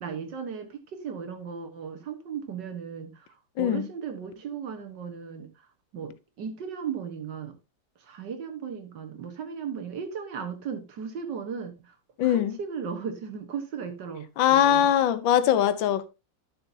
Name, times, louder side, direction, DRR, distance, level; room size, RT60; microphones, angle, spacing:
voice 1, 0.0-3.3 3.6-5.7 5.9-7.6 8.0-12.0 12.2-14.9, right 6 dB, 65° right, 1.9 m, -36 dB
voice 2, 3.6-3.9 12.2-12.6 14.4-16.1, left 10 dB, 80° left, 1.5 m, -22 dB
12.0 x 6.8 x 2.7 m
omnidirectional pair, 2.1 m